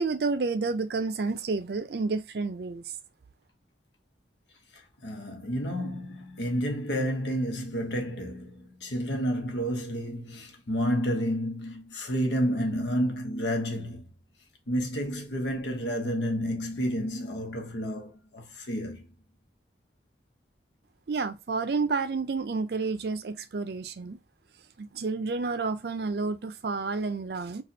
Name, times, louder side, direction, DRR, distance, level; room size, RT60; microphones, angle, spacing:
voice 1, 0.0-2.8 21.1-24.2 24.8-27.6, right 4 dB, 60° right, 0.5 m, -30 dB
voice 2, 4.7-14.1 14.7-19.1, equal, 80° left, 1.0 m, -30 dB
4.2 x 2.4 x 2.7 m
head